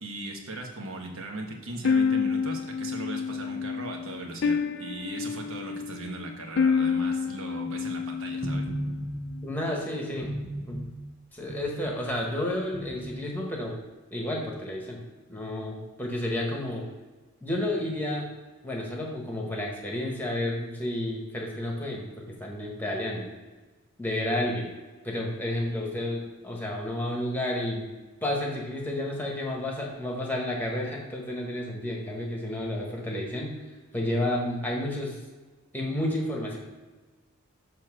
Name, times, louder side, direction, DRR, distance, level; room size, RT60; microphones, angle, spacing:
voice 1, 0.0-8.7, right 2 dB, 65° right, 2 dB, 1.2 m, -38 dB
sound 1, 1.8-9.0, left 5 dB, 50° left, 0.3 m, -28 dB
sound 2, 8.4-9.5 10.2-11.1 11.5-12.2 12.7-13.4, right 1 dB, 25° right, 0.8 m, -35 dB
voice 2, 9.4-10.3 10.7-10.8 11.3-13.7 14.1-15.0 15.3-16.9 17.4-18.3 18.6-23.3 24.0-24.7 25.0-27.9 28.2-33.5 33.9-35.2 35.7-36.6, left 1 dB, 10° left, -1 dB, 1.2 m, -31 dB
7.1 x 3.2 x 6.1 m, 1.3 s
head